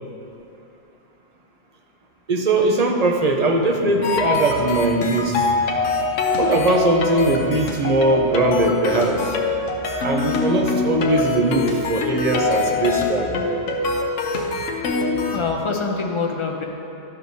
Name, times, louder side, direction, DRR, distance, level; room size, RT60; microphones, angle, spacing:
voice 1, 2.3-5.5 6.4-9.3 10.0-13.5, right 2 dB, 45° right, 2 dB, 0.5 m, -20 dB
sound 1, 4.0-15.4, left 3 dB, 75° left, 1.1 m, -24 dB
voice 2, 15.3-16.6, left 4 dB, 35° left, 1 dB, 0.5 m, -25 dB
11.5 x 6.5 x 2.7 m, 2.8 s
omnidirectional pair, 1.3 m